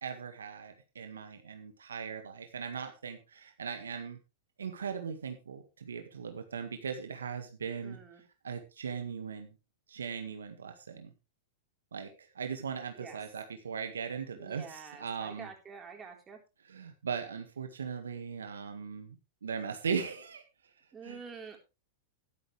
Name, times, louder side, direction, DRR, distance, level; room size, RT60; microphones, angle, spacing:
voice 1, 0.0-4.2 4.6-8.0 8.4-9.5 9.9-11.1 11.9-15.5 16.7-20.4 21.0-21.2, right 6 dB, 90° right, 6 dB, 1.8 m, -39 dB
voice 2, 7.8-8.2 12.9-13.2 14.3-16.4 20.9-21.6, right 5 dB, 20° right, 2 dB, 4.0 m, -47 dB
12.5 x 11.0 x 3.3 m, 0.29 s
hypercardioid pair, 110°, 0 cm